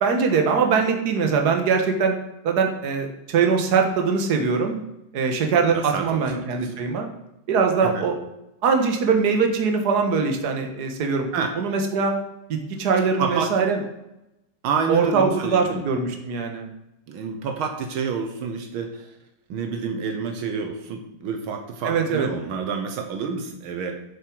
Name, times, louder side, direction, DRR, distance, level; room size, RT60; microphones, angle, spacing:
voice 1, 0.0-2.2 2.4-4.8 5.1-7.1 7.5-8.2 8.6-11.3 11.6-12.1 12.5-13.8 14.9-16.7 21.8-22.3, right 5 dB, 55° right, 4 dB, 1.8 m, -22 dB
voice 2, 5.7-6.7 7.8-8.1 11.3-11.5 13.2-13.5 14.6-15.9 17.1-19.1 19.5-24.0, right 6 dB, 75° right, 5 dB, 1.8 m, -28 dB
10.5 x 7.5 x 4.7 m, 0.89 s
omnidirectional pair, 2.3 m